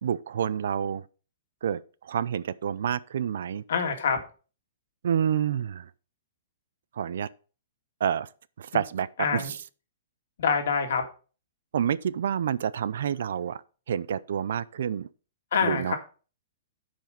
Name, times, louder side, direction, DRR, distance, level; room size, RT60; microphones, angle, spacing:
voice 1, 0.0-1.0 1.6-3.6 5.0-5.9 7.0-7.3 8.0-8.3 8.6-9.1 9.3-9.6 11.7-13.6 13.9-15.1 15.6-15.9, right 8 dB, 70° right, 0.5 m, -28 dB
voice 2, 3.7-4.2 9.2-9.5 10.4-11.0 15.5-16.0, left 6 dB, 65° left, 1.9 m, -25 dB
9.2 x 5.1 x 5.1 m
hypercardioid pair, 165°, 0 cm